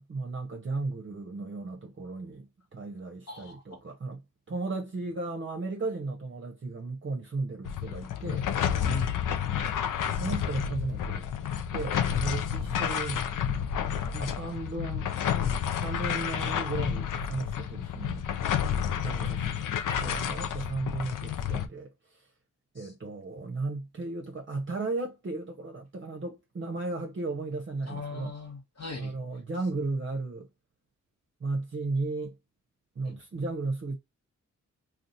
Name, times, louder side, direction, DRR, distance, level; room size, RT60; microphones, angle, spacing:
voice 1, 0.0-4.2 4.5-8.5 10.2-11.3 11.7-13.2 14.1-15.1 15.7-18.3 19.0-19.5 20.0-22.2 22.7-28.3 28.9-30.5 31.4-32.3 33.0-34.0, right 3 dB, 40° right, 0.8 m, -35 dB
voice 2, 3.3-3.8 8.9-9.2 19.4-19.8 22.8-22.9 27.9-29.2 33.0-33.2, left 3 dB, 55° left, 1.1 m, -40 dB
sound 1, 7.7-21.7, left 8 dB, 80° left, 0.5 m, -30 dB
2.5 x 2.3 x 3.9 m
cardioid pair, 55°, 31 cm